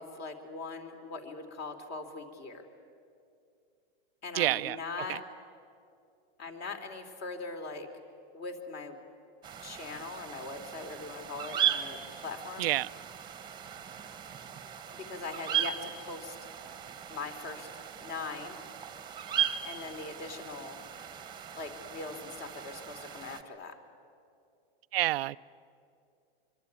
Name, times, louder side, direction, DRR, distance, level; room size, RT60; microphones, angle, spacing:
voice 1, 0.0-2.7 4.2-5.2 6.4-7.9 8.3-9.0 9.6-12.7 14.7-16.3 17.1-17.7 18.0-18.6 19.6-20.8 21.5-23.8, left 4 dB, 35° left, 3.4 m, -41 dB
voice 2, 4.4-4.8 5.1-5.2 12.6-12.9 24.9-25.4, right 15 dB, 80° right, 0.6 m, -28 dB
sound 1, 9.4-23.4, right 10 dB, 15° right, 1.3 m, -37 dB
25.0 x 24.5 x 9.5 m
supercardioid pair, 145°, 30 cm